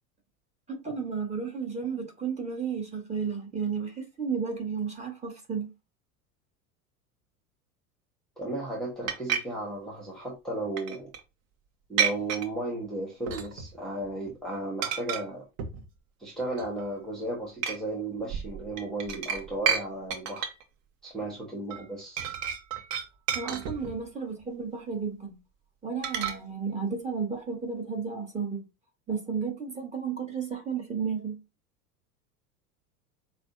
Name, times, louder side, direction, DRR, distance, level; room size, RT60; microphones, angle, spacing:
voice 1, 0.7-5.7 23.3-25.4 25.8-28.6 29.1-31.4, right 6 dB, 15° right, 1.7 m, -33 dB
voice 2, 8.4-11.1 11.9-15.4 16.2-20.5 21.0-22.2, right 2 dB, ahead, 1.4 m, -34 dB
sound 1, 9.1-9.4 10.8-11.2 12.0-12.5 13.3-13.8 14.0-14.3 14.8-15.2 15.6-15.9 16.4-16.9 17.6-17.8 18.3-19.8 20.1-20.6 21.7-21.8 22.2-24.0 26.0-26.3, right 7 dB, 55° right, 1.1 m, -30 dB
6.4 x 2.5 x 2.7 m
figure-of-eight pair, 85°, 46 cm